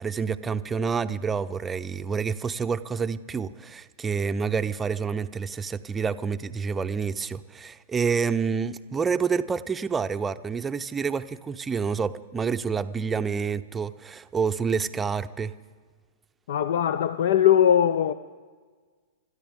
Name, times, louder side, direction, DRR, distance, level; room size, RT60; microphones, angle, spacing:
voice 1, 0.0-15.5, right 5 dB, 15° right, 0.6 m, -28 dB
voice 2, 16.5-18.1, left 10 dB, 65° left, 0.5 m, -20 dB
27.0 x 13.0 x 3.6 m
hypercardioid pair, 115°, 0 cm